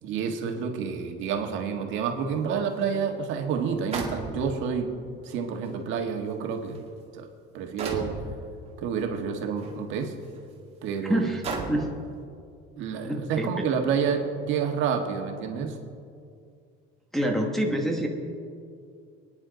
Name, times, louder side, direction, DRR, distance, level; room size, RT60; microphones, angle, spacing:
voice 1, 0.0-4.9 5.2-6.8 7.1-7.2 7.5-8.1 8.8-10.1 10.8-11.3 11.6-11.9 12.8-15.8, right 6 dB, 65° right, 3 dB, 1.7 m, -29 dB
sound 1, 2.8-2.9 3.9-4.7 5.6-5.7 6.5-6.8 7.8-8.3 9.6-9.7 10.3-10.4 11.4-12.0, right 4 dB, 30° right, 2.2 m, -33 dB
voice 2, 11.1-11.4 11.7-11.9 13.0-13.7 17.1-18.1, right 1 dB, ahead, -1 dB, 1.1 m, -26 dB
28.0 x 9.9 x 3.9 m, 2.3 s
cardioid pair, 170°, 21 cm